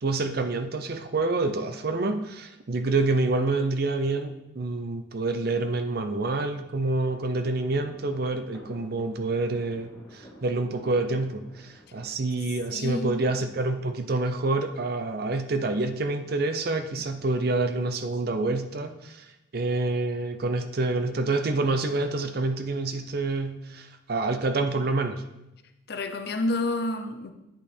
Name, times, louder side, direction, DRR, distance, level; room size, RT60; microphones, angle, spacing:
voice 1, 0.0-19.3 19.5-25.2, right 3 dB, 50° right, 0.5 m, -27 dB
sound 1, 7.0-12.2, equal, 15° left, 2.1 m, -51 dB
voice 2, 12.7-13.2 25.9-27.3, left 2 dB, 55° left, 0.6 m, -29 dB
8.8 x 5.5 x 4.3 m
head